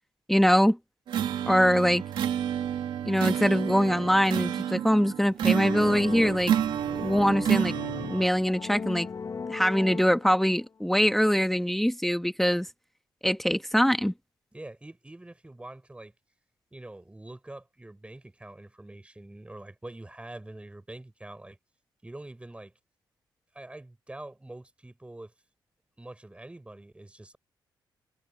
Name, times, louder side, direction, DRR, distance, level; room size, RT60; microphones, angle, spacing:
voice 1, 0.3-0.8 1.5-2.0 3.0-6.5 6.9-7.7 8.1-9.1 9.5-12.7 13.2-14.1, equal, 5° left, 1.3 m, -23 dB
sound 1, 1.1-8.3, right 10 dB, 85° right, 2.2 m, -29 dB
sound 2, 5.6-10.6, left 5 dB, 45° left, 1.4 m, -38 dB
voice 2, 7.8-8.2 14.5-16.1 16.7-21.6 22.0-22.7 23.5-25.3 26.0-27.4, right 2 dB, 15° right, 6.6 m, -45 dB
cardioid pair, 85°, 8 cm